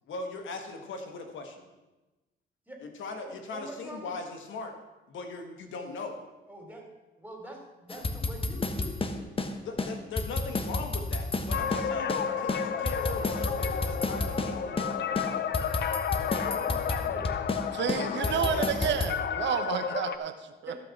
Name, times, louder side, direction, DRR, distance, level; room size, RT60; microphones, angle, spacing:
voice 1, 0.1-1.7 2.8-4.8 5.1-6.2 9.6-15.0 18.0-18.7, left 3 dB, 75° left, 5 dB, 1.7 m, -39 dB
voice 2, 3.2-4.1 6.5-6.8 7.2-9.2 9.8-9.9 16.3-17.3 17.9-18.5 20.7-20.8, right 1 dB, 10° right, 1 dB, 3.3 m, -44 dB
sound 1, 7.9-9.5 9.8-9.9 10.2-12.2 12.5-14.5 14.8-14.9 15.2-17.6 17.9-19.1, left 2 dB, 25° left, 1.2 m, -31 dB
sound 2, 11.5-20.2, left 8 dB, 60° left, 0.8 m, -32 dB
voice 3, 17.7-20.7, right 8 dB, 65° right, 9 dB, 0.9 m, -31 dB
15.0 x 6.1 x 5.8 m, 1.1 s
cardioid pair, 90°, 20 cm